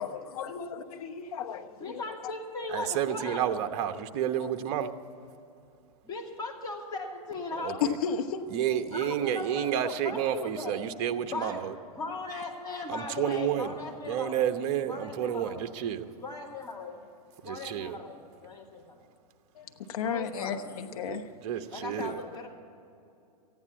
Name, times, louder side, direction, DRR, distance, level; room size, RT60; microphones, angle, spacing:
voice 1, 0.0-2.0 7.8-8.5 19.5-21.3, left 7 dB, 65° left, 6 dB, 1.1 m, -34 dB
voice 2, 1.7-3.4 6.0-7.9 8.9-10.8 11.3-11.6 11.9-14.4 14.9-15.7 16.2-17.0 17.4-19.1 20.0-20.7 21.7-22.5, left 3 dB, 20° left, -2 dB, 2.5 m, -38 dB
voice 3, 2.7-4.9 7.6-8.0 8.5-11.7 12.9-13.8 14.1-16.1 17.4-18.0 21.0-22.2, right 10 dB, 45° right, 8 dB, 1.0 m, -30 dB
14.5 x 9.6 x 8.3 m, 2.6 s
hypercardioid pair, 130°, 20 cm